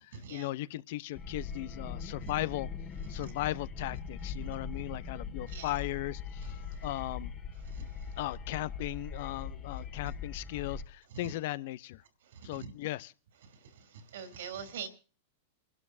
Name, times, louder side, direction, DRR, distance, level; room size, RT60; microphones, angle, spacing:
voice 1, 0.0-2.7 3.1-7.3 8.2-12.0 12.4-13.1, left 16 dB, 60° left, 0.7 m, -37 dB
sound 1, 1.1-10.8, left 5 dB, 35° left, 2.0 m, -41 dB
voice 2, 7.7-8.1 11.2-11.3 12.3-12.7 13.9-14.9, right 7 dB, 75° right, 3.0 m, -43 dB
28.0 x 12.0 x 2.7 m
hypercardioid pair, 105°, 0 cm